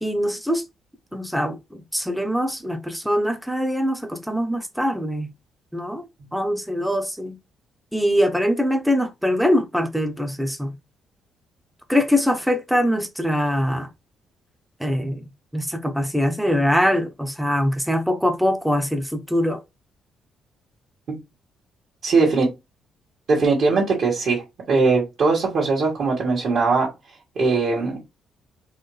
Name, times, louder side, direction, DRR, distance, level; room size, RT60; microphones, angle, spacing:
voice 1, 0.0-0.6 1.1-5.3 5.7-6.1 6.3-7.4 7.9-10.8 11.9-13.9 14.8-15.2 15.5-19.6, equal, ahead, 0.9 m, -23 dB
voice 2, 22.0-22.5 23.3-24.4 24.7-26.9 27.4-28.0, right 4 dB, 60° right, 2.1 m, -20 dB
4.7 x 2.9 x 3.3 m
cardioid pair, 90°, 0 cm